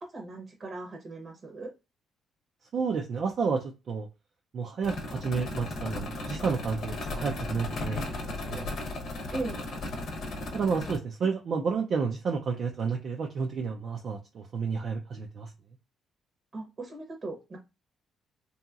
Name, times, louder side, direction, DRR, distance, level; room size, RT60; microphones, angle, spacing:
voice 1, 0.0-1.7 9.3-9.6 16.5-17.6, right 2 dB, 40° right, 3 dB, 0.8 m, -38 dB
voice 2, 2.7-4.1 4.5-8.7 10.5-15.5, right 5 dB, 60° right, 1 dB, 0.4 m, -31 dB
sound 1, 4.8-11.0, left 2 dB, 65° left, 0.9 m, -36 dB
2.8 x 2.8 x 2.3 m, 0.28 s
cardioid pair, 90°, 0 cm